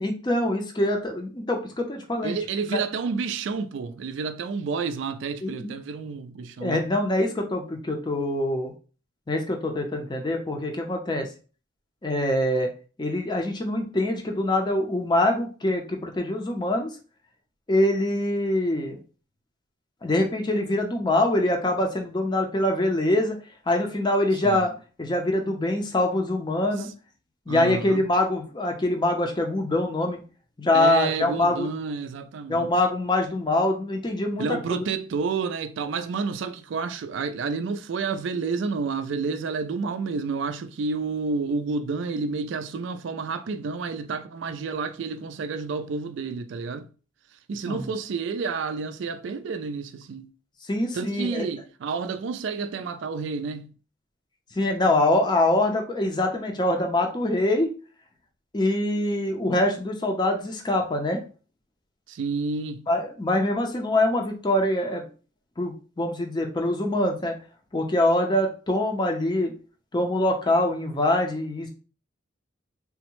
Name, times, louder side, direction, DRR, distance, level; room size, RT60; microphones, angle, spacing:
voice 1, 0.0-2.4 2.7-2.8 5.4-5.7 6.6-8.7 9.3-11.3 12.0-12.7 13.0-16.9 17.7-19.0 20.0-23.4 23.7-24.7 25.0-26.9 27.5-30.2 30.6-31.7 32.5-34.8 47.6-47.9 50.7-51.5 54.6-57.7 58.5-61.2 62.9-65.0 65.6-67.4 67.7-69.5 69.9-71.7, left 1 dB, 20° left, 0.5 m, -24 dB
voice 2, 2.2-6.9 24.4-24.7 26.8-26.9 27.5-28.1 30.7-32.7 34.4-46.9 47.3-50.3 50.9-53.7 62.1-62.9, right 4 dB, 65° right, 0.3 m, -30 dB
3.4 x 2.1 x 2.9 m
head